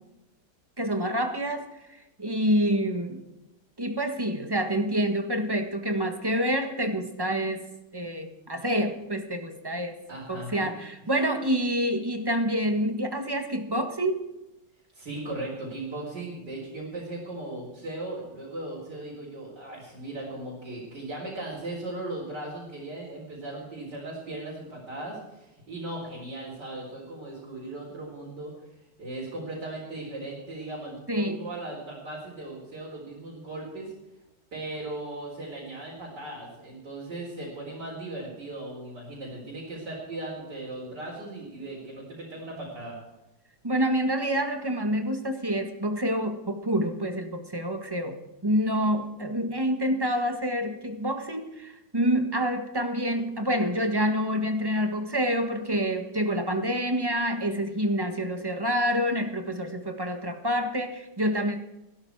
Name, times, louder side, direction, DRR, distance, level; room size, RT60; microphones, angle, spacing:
voice 1, 0.8-1.7 2.2-3.2 3.8-7.6 7.9-10.0 10.3-14.2 31.1-31.4 43.6-61.6, equal, 15° right, 6 dB, 1.4 m, -27 dB
voice 2, 10.1-10.7 14.9-28.5 29.0-33.9 34.5-43.0, right 2 dB, 70° right, -6 dB, 4.9 m, -37 dB
17.0 x 12.5 x 4.7 m, 0.96 s
omnidirectional pair, 1.9 m